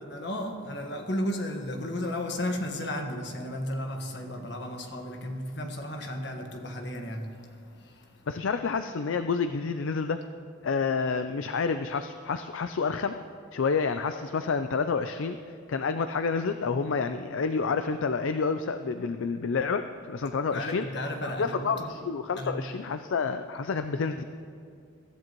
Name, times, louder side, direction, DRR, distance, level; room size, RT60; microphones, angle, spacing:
voice 1, 0.0-8.3 20.5-21.9 22.4-22.6, left 1 dB, 55° left, 3 dB, 1.5 m, -34 dB
voice 2, 8.3-10.2 10.6-13.2 13.5-15.4 15.7-20.8 21.4-24.2, left 5 dB, 70° left, 9 dB, 0.4 m, -29 dB
22.5 x 14.0 x 3.0 m, 2.4 s
head